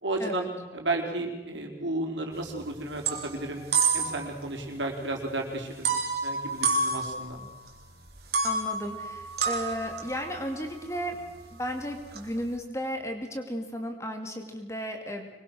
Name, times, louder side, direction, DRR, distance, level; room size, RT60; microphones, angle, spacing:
voice 1, 0.0-3.6 3.9-5.9 6.2-7.4, right 2 dB, 80° right, 2 dB, 4.5 m, -33 dB
sound 1, 2.3-2.6 2.9-4.4 4.7-4.8 5.8-7.7 8.1-12.5, right 4 dB, 55° right, 3.8 m, -30 dB
voice 2, 8.4-11.2 11.5-15.3, equal, 15° left, 4 dB, 2.7 m, -34 dB
25.5 x 22.0 x 6.4 m, 1.1 s
head